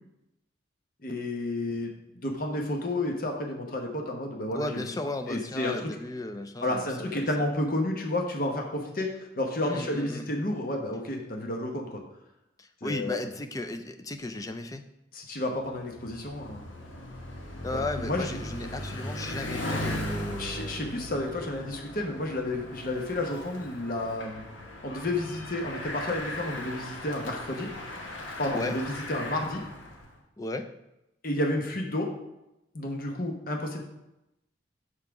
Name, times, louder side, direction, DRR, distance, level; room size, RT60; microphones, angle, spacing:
voice 1, 1.0-1.9 2.2-4.8 5.3-5.8 6.6-12.0 12.8-13.3 15.1-16.6 17.7-18.4 20.4-24.4 24.8-27.7 28.4-29.6 31.2-32.1 32.7-33.8, left 1 dB, 45° left, 1 dB, 1.0 m, -31 dB
voice 2, 4.5-7.5 9.6-10.3 12.6-14.9 17.6-20.9 28.5-28.8 30.4-30.7, left 2 dB, 20° left, 8 dB, 0.4 m, -35 dB
Bicycle, 15.5-30.1, left 1 dB, 85° left, 1.2 m, -38 dB
5.6 x 4.9 x 5.8 m, 0.90 s
head